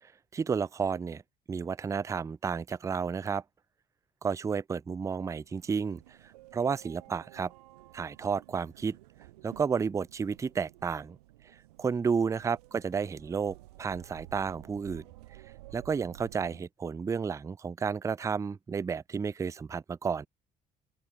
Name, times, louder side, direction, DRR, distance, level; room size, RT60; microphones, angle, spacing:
voice 1, 0.3-1.2 1.5-3.4 4.2-6.2 6.5-7.5 7.9-9.0 9.4-11.2 11.8-15.0 15.7-20.3, right 6 dB, 15° right, 0.3 m, -31 dB
sound 1, 5.4-16.6, right 18 dB, 80° right, 4.3 m, -53 dB
open air
hypercardioid pair, 55°, 20 cm